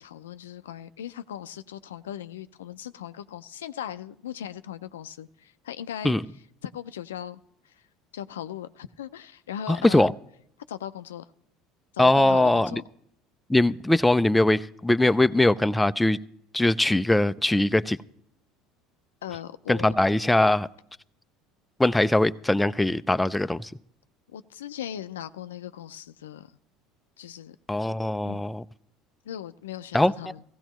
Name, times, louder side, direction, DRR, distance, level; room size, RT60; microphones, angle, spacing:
voice 1, 0.0-6.1 6.6-7.8 8.1-10.1 10.7-11.3 11.9-12.8 19.2-20.0 24.3-26.5 27.2-27.6 28.2-28.4 29.3-30.4, left 10 dB, 90° left, 0.4 m, -38 dB
voice 2, 9.7-10.1 12.0-12.8 13.5-16.2 16.5-18.0 19.7-20.7 21.8-23.7 27.7-28.6 29.9-30.1, left 1 dB, 10° left, 0.4 m, -21 dB
16.5 x 16.0 x 3.0 m
hypercardioid pair, 75°, 0 cm